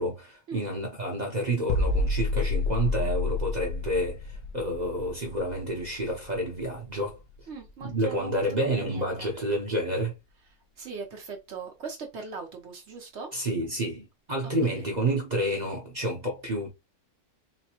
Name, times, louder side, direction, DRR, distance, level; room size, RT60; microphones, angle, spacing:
voice 1, 0.0-7.2 7.8-10.1 13.3-16.7, right 1 dB, 35° right, 0.9 m, -29 dB
sound 1, 1.7-7.4 7.7-7.9, left 3 dB, 75° left, 1.0 m, -30 dB
voice 2, 7.5-9.3 10.8-13.3 14.7-14.8, right 5 dB, 55° right, 0.9 m, -40 dB
4.0 x 2.1 x 2.9 m
omnidirectional pair, 1.6 m